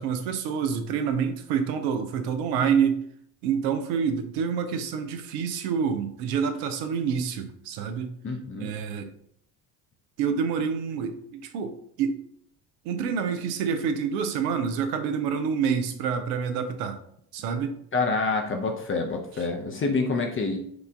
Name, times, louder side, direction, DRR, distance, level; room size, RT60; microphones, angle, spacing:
voice 1, 0.0-3.0 3.4-8.1 8.6-9.1 10.2-12.2 12.8-17.0 17.3-17.8, right 6 dB, 70° right, 7 dB, 0.7 m, -27 dB
voice 2, 8.2-8.7 17.9-20.6, left 3 dB, 25° left, 3 dB, 0.7 m, -27 dB
4.8 x 2.6 x 3.5 m, 0.68 s
hypercardioid pair, 60°, 49 cm